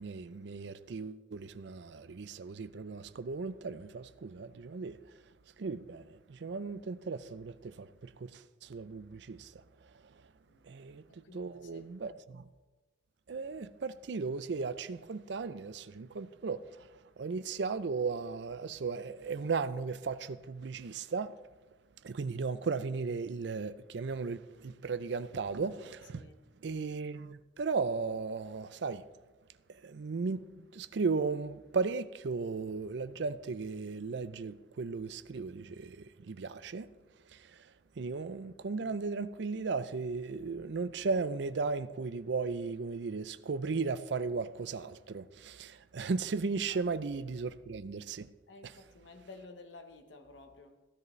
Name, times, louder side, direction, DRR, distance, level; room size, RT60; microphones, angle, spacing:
voice 1, 0.0-10.3 10.6-12.5 13.3-21.4 22.0-26.3 26.6-29.0 29.7-36.9 37.3-48.3 48.6-48.7, right 4 dB, 75° right, 0.5 m, -36 dB
voice 2, 11.2-11.9 26.1-26.4 46.7-46.8 48.5-50.8, left 3 dB, 85° left, 1.1 m, -53 dB
15.0 x 10.5 x 3.2 m
head